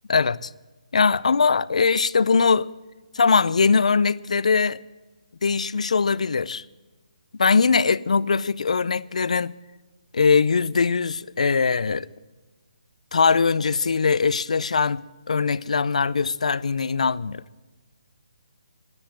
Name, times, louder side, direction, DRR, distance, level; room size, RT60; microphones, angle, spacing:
voice 1, 0.1-0.5 0.9-2.7 3.1-4.8 5.4-6.6 7.4-9.5 10.1-12.1 13.1-17.4, left 5 dB, 75° left, 0.6 m, -21 dB
13.0 x 9.9 x 8.8 m
hypercardioid pair, 165°, 4 cm